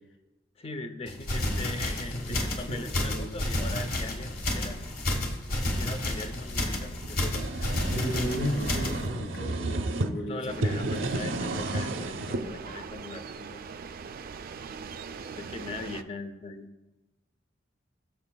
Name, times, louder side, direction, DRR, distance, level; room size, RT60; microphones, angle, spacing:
voice 1, 0.6-5.3 5.6-7.8 10.3-13.7 15.4-16.7, left 2 dB, 30° left, 9 dB, 0.6 m, -41 dB
sound 1, 1.1-9.1, left 1 dB, 50° left, 1.3 m, -31 dB
voice 2, 1.4-3.5 7.9-11.3 15.2-15.3, equal, 75° left, 5 dB, 1.3 m, -35 dB
sound 2, 7.0-10.1 10.5-12.4, right 2 dB, 90° right, 0.7 m, -32 dB
sound 3, 10.5-16.0, right 5 dB, 50° right, 0.4 m, -41 dB
18.0 x 6.1 x 2.3 m, 1.1 s
head